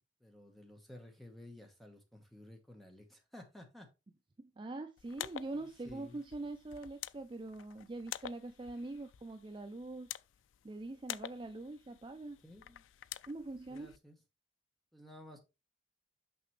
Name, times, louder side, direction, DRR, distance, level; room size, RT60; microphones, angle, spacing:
voice 1, 0.2-3.9 5.5-6.2 12.4-12.8 13.7-14.2 14.9-15.4, left 1 dB, ahead, 1.2 m, -54 dB
voice 2, 4.4-10.2 10.6-12.4 13.2-14.0, right 2 dB, 25° right, 0.4 m, -43 dB
sound 1, 5.0-14.0, left 11 dB, 85° left, 0.3 m, -49 dB
6.0 x 5.9 x 3.1 m
head